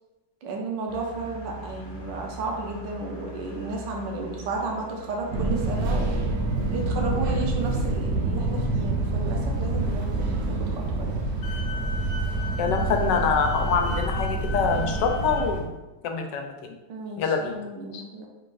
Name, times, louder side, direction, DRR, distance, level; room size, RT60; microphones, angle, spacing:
voice 1, 0.4-6.3 6.7-11.2 16.9-18.3, right 2 dB, 85° right, 0 dB, 1.4 m, -33 dB
sound 1, 0.9-5.9, right 2 dB, 50° left, 0.8 m, -42 dB
Fixed-wing aircraft airplane, 5.3-15.6, right 2 dB, 70° right, 0.6 m, -27 dB
Wind instrument woodwind instrument, 11.4-15.5, left 4 dB, 70° left, 1.1 m, -37 dB
voice 2, 12.6-15.8 16.0-16.7 17.2-17.5, left 5 dB, 85° left, 4 dB, 1.3 m, -25 dB
3.9 x 2.5 x 3.8 m, 1.1 s
omnidirectional pair, 1.9 m